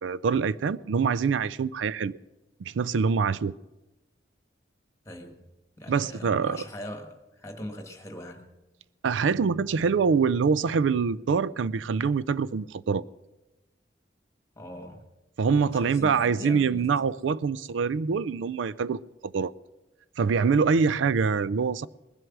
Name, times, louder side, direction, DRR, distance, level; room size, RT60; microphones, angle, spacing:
voice 1, 0.0-2.2 2.6-3.5 5.9-6.6 9.0-13.0 15.4-19.5 20.2-21.9, right 5 dB, 90° right, 0.4 m, -25 dB
voice 2, 5.0-5.4 5.8-8.5 14.5-15.1 15.6-17.1, left 1 dB, 15° left, 1.5 m, -41 dB
20.0 x 7.9 x 6.0 m
head